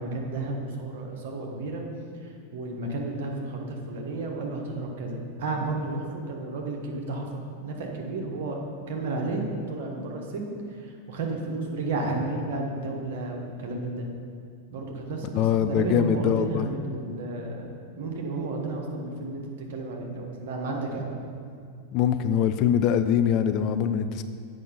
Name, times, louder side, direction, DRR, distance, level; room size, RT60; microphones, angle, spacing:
voice 1, 0.0-1.8 2.2-7.3 7.6-8.6 8.9-14.1 14.7-17.7 18.0-21.2, right 2 dB, 55° right, 0 dB, 1.4 m, -32 dB
voice 2, 15.3-16.7 21.9-24.2, left 8 dB, 40° left, 9 dB, 0.4 m, -23 dB
8.3 x 5.4 x 5.6 m, 2.3 s
figure-of-eight pair, 90°, 0 cm